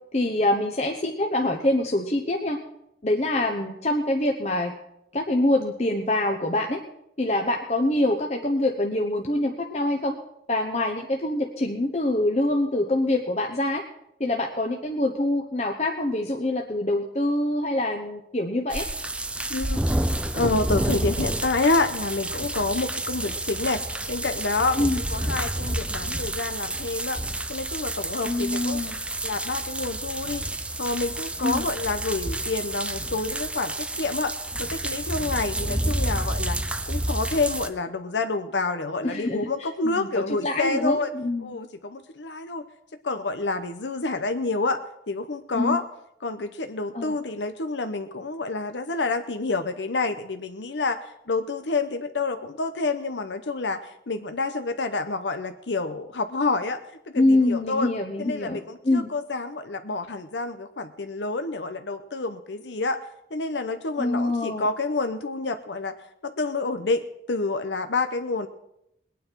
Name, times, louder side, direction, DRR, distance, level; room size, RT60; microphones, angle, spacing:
voice 1, 0.1-2.6 3.0-4.7 5.1-6.8 7.2-10.2 10.5-13.8 14.2-18.9 24.8-25.0 28.2-29.0 31.4-31.7 39.0-39.5 39.8-41.5 45.5-45.8 46.9-47.2 57.1-58.6 58.8-59.1 64.0-64.7, left 1 dB, 40° left, 2 dB, 1.0 m, -25 dB
sound 1, 18.7-37.7, right 1 dB, 5° right, 0.5 m, -29 dB
voice 2, 20.3-27.2 27.5-28.8 29.2-30.5 30.8-34.3 34.6-36.6 36.9-41.1 41.4-42.6 43.0-44.8 45.1-45.8 46.2-56.8 57.1-57.9 58.2-63.0 63.3-65.9 66.2-68.5, left 3 dB, 90° left, 8 dB, 0.8 m, -28 dB
21.0 x 9.3 x 4.6 m, 0.81 s
head